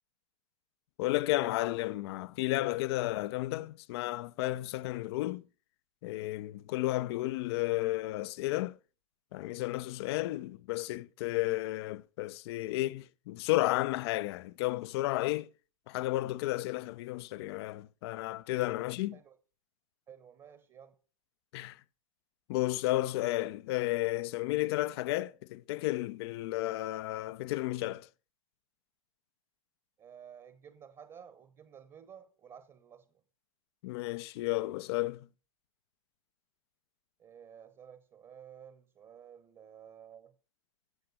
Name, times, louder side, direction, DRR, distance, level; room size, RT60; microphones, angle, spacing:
voice 1, 1.0-5.5 6.0-8.8 9.3-15.5 15.9-19.2 21.5-21.8 22.5-28.1 33.8-35.3, left 18 dB, 50° left, 0.6 m, -32 dB
voice 2, 20.1-21.0 30.0-33.2 37.2-40.3, right 8 dB, 25° right, 1.1 m, -53 dB
14.0 x 7.6 x 4.2 m
figure-of-eight pair, 100°, 18 cm